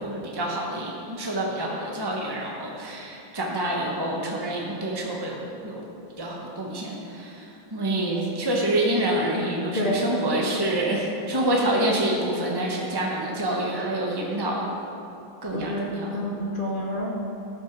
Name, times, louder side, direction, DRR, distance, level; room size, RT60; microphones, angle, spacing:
voice 1, 0.0-5.8 6.2-14.7 15.4-16.2, right 1 dB, 20° right, -2 dB, 0.6 m, -27 dB
voice 2, 15.5-15.8 16.1-17.1, left 1 dB, 35° left, -3 dB, 0.9 m, -28 dB
14.0 x 6.1 x 6.0 m, 2.8 s
omnidirectional pair, 2.3 m